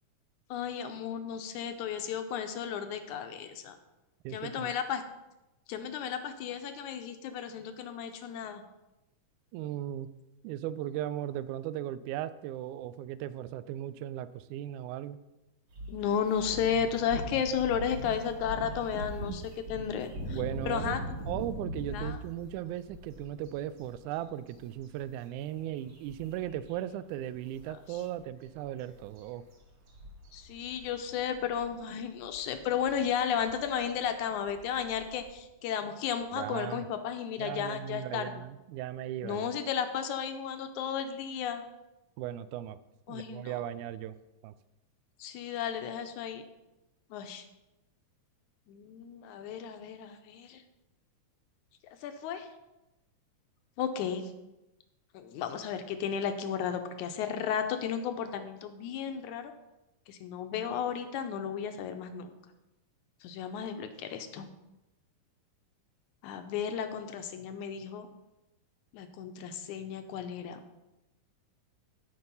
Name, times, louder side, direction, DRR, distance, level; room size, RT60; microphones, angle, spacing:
voice 1, 0.5-3.8 4.3-5.0 5.7-8.6 15.9-20.4 20.7-21.2 21.9-22.2 30.3-38.3 39.2-41.6 43.1-43.6 45.2-46.4 47.1-47.4 48.7-50.6 52.0-52.5 53.8-54.3 55.1-59.5 60.1-62.3 63.2-64.5 66.2-68.1 68.9-70.6, left 8 dB, 75° left, 7 dB, 2.0 m, -34 dB
voice 2, 4.2-4.7 9.5-10.1 10.4-15.2 20.3-21.0 21.3-29.4 36.3-36.9 37.4-39.5 42.2-42.8 43.1-44.2 44.4-44.5, right 12 dB, 80° right, 14 dB, 1.9 m, -37 dB
sound 1, 15.7-26.8 27.1-27.2 27.5-35.3, right 1 dB, 55° right, 2.3 m, -42 dB
13.0 x 4.5 x 5.5 m, 0.99 s
omnidirectional pair, 3.8 m